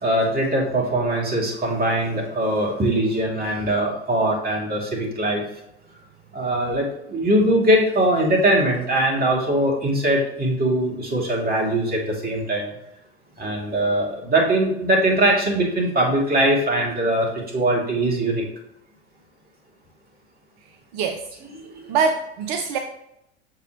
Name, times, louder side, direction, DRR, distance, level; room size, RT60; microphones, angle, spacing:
voice 1, 0.0-5.4 6.3-12.7 13.4-18.4, right 1 dB, 25° right, -1 dB, 2.5 m, -21 dB
voice 2, 20.9-21.3 21.7-22.8, right 5 dB, 50° right, 5 dB, 0.7 m, -24 dB
6.7 x 5.8 x 3.0 m, 0.80 s
figure-of-eight pair, 80°, 35 cm